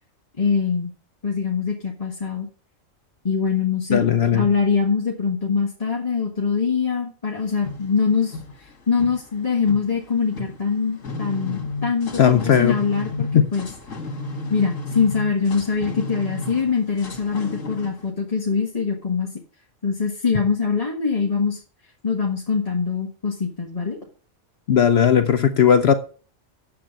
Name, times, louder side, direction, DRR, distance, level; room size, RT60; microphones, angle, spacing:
voice 1, 0.4-0.9 1.2-2.5 3.2-4.0 4.3-13.7 14.5-19.4 19.8-21.6 22.0-24.0, left 5 dB, 30° left, 1.7 m, -23 dB
voice 2, 3.9-4.5 12.2-12.8 13.3-13.5 24.7-25.9, left 8 dB, 60° left, 0.9 m, -17 dB
sound 1, 7.4-18.1, left 2 dB, 85° left, 2.3 m, -34 dB
9.4 x 7.6 x 5.3 m
omnidirectional pair, 1.3 m